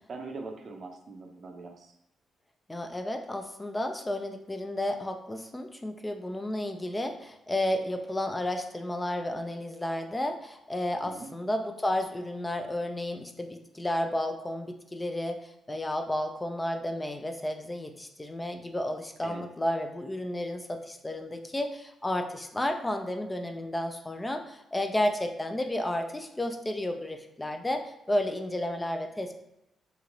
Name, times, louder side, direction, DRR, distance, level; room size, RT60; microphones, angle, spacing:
voice 1, 0.1-1.9 11.0-11.3 19.2-19.4, right 3 dB, 55° right, 3 dB, 0.5 m, -42 dB
voice 2, 2.7-29.4, left 1 dB, 20° left, 5 dB, 0.4 m, -32 dB
3.0 x 2.9 x 2.5 m, 0.86 s
supercardioid pair, 55°, 0 cm